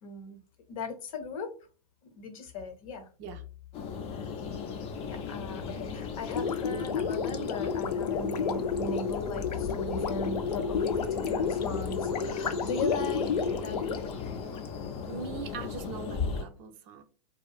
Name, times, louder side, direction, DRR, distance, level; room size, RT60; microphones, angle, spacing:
voice 1, 0.0-0.4 0.7-1.5 2.2-3.1 4.1-4.3 5.1-14.2, left 3 dB, 60° left, 7 dB, 0.7 m, -38 dB
sound 1, 3.7-16.4, left 5 dB, 30° left, 0.4 m, -37 dB
Gurgling, 6.3-14.7, left 5 dB, 90° left, 0.4 m, -31 dB
voice 2, 15.1-17.0, right 6 dB, 35° right, 6 dB, 0.4 m, -41 dB
2.7 x 2.3 x 2.3 m, 0.37 s
hypercardioid pair, 125°, 20 cm